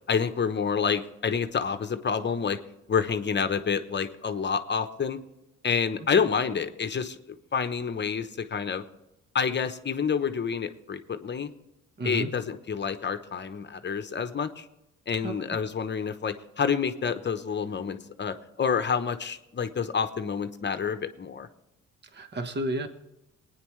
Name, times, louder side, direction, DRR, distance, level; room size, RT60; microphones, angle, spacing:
voice 1, 0.1-2.6 2.9-5.2 5.6-8.8 9.3-11.5 12.0-14.7 15.1-21.5, left 6 dB, 35° left, 9 dB, 1.0 m, -28 dB
voice 2, 12.0-12.3 15.2-15.3 22.1-22.9, right 1 dB, 35° right, 7 dB, 1.4 m, -31 dB
21.0 x 9.7 x 3.2 m, 0.90 s
cardioid pair, 90°, 30 cm